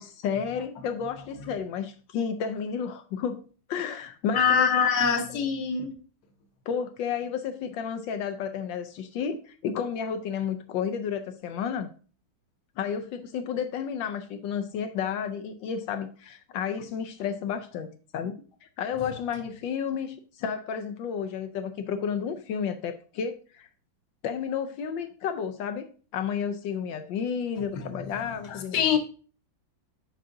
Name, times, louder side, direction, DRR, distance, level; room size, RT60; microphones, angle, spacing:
voice 1, 0.0-3.4 3.7-4.7 6.7-11.9 12.8-17.9 18.1-18.3 18.8-23.7 24.2-29.0, left 7 dB, 75° left, 1.3 m, -31 dB
voice 2, 4.3-5.9 27.7-27.9 28.4-29.0, left 7 dB, 60° left, 1.4 m, -24 dB
7.5 x 5.6 x 2.6 m
omnidirectional pair, 2.2 m